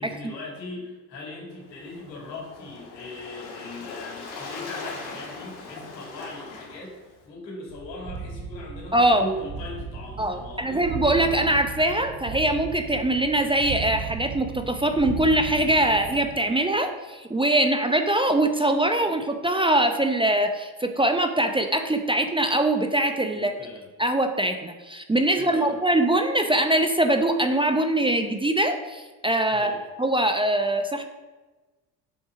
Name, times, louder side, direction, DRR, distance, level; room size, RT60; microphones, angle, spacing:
voice 1, 0.0-10.8 23.3-23.9 25.3-25.8 29.5-29.8, left 2 dB, 85° left, -2 dB, 2.4 m, -39 dB
Waves surf, 1.6-7.3, left 4 dB, 60° left, 2.0 m, -40 dB
sound 1, 7.7-16.4, right 5 dB, 45° right, 1.2 m, -36 dB
voice 2, 8.9-9.3 10.2-23.5 24.0-29.7 30.0-31.1, right 1 dB, 10° right, 6 dB, 0.6 m, -23 dB
7.3 x 5.6 x 4.8 m, 1.2 s
hypercardioid pair, 55°, 49 cm